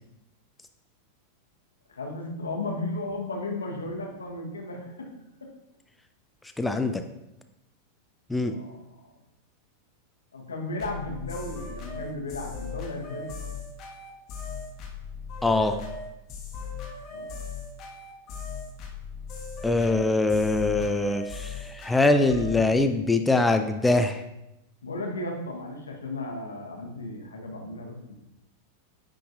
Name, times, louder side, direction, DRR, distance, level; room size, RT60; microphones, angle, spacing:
voice 1, 1.9-5.1 8.4-9.1 10.3-13.3 17.1-17.3 24.8-28.1, left 2 dB, 75° left, 1 dB, 1.0 m, -35 dB
voice 2, 6.6-6.9 8.3-8.6 15.4-15.8 19.6-24.2, left 2 dB, 5° left, 7 dB, 0.3 m, -23 dB
sound 1, 10.8-22.7, left 5 dB, 35° left, 1.1 m, -38 dB
9.6 x 3.8 x 2.6 m, 0.89 s
figure-of-eight pair, 90°, 0 cm